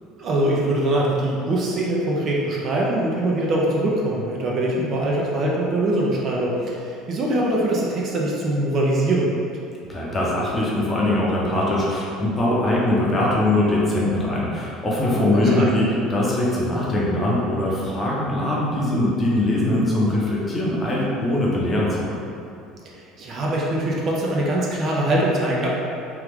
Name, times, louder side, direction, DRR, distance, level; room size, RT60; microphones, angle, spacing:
voice 1, 0.2-9.4 15.2-15.8 22.8-25.7, right 1 dB, 40° right, -3 dB, 0.5 m, -23 dB
voice 2, 9.9-22.2, left 1 dB, 20° left, -5 dB, 0.7 m, -22 dB
3.0 x 2.3 x 3.5 m, 2.6 s
cardioid pair, 135°, 0 cm